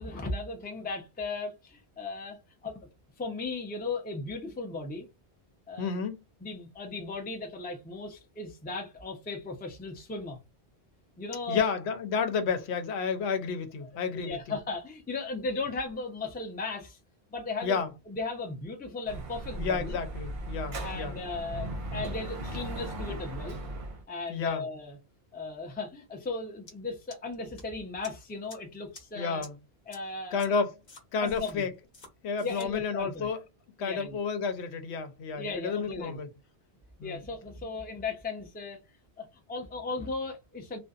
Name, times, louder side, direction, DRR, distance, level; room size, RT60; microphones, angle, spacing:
voice 1, 0.0-2.9 3.2-5.1 5.7-6.0 6.4-10.4 11.2-11.7 13.9-17.0 17.3-17.8 18.1-20.0 20.8-23.6 24.1-25.0 25.3-29.5 29.9-30.4 31.2-31.7 32.4-33.3 33.8-34.2 35.3-36.2 37.0-38.8 39.2-40.8, left 3 dB, 15° left, 0.4 m, -36 dB
voice 2, 5.8-6.2 11.5-14.6 17.6-17.9 19.6-21.2 24.3-24.6 29.1-29.5 30.3-30.8 31.1-31.7 32.2-33.4 33.8-36.3 37.0-37.2, left 5 dB, 80° left, 0.9 m, -31 dB
Dog / Motorcycle, 19.1-24.0, right 1 dB, 55° right, 0.7 m, -37 dB
sound 1, 26.7-26.8 27.1-27.6 28.0-28.1 28.5-28.6 28.9-29.0 29.4-29.5 29.9-30.0 30.4-30.5 30.9-31.5 31.9-32.1 32.4-32.7, left 3 dB, 45° left, 0.9 m, -49 dB
2.6 x 2.2 x 2.3 m
omnidirectional pair, 1.1 m